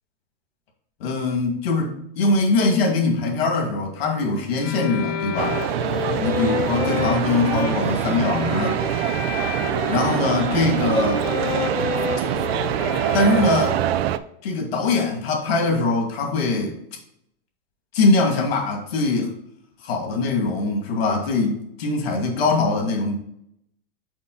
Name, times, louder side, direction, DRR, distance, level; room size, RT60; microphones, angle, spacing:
voice 1, 1.0-5.6 6.2-8.8 9.9-11.2 13.1-13.8 14.4-16.8 17.9-19.3 19.8-23.1, left 3 dB, 75° left, 1 dB, 2.3 m, -22 dB
sound 1, 4.6-14.0, left 7 dB, 40° left, 1.1 m, -30 dB
sound 2, 5.4-14.2, right 11 dB, 80° right, 0.6 m, -24 dB
6.2 x 5.2 x 3.9 m, 0.72 s
supercardioid pair, 170°, 30 cm